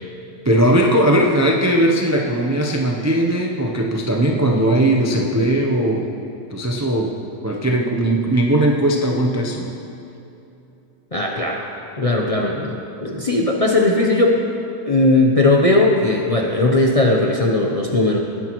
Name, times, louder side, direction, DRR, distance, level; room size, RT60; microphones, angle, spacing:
voice 1, 0.4-6.1 6.5-7.1 7.4-9.7, right 1 dB, 25° right, 0 dB, 0.3 m, -18 dB
voice 2, 11.1-11.7 12.0-14.4 14.9-18.2, left 2 dB, 35° left, -1 dB, 0.6 m, -18 dB
19.0 x 9.9 x 3.1 m, 2.8 s
omnidirectional pair, 1.7 m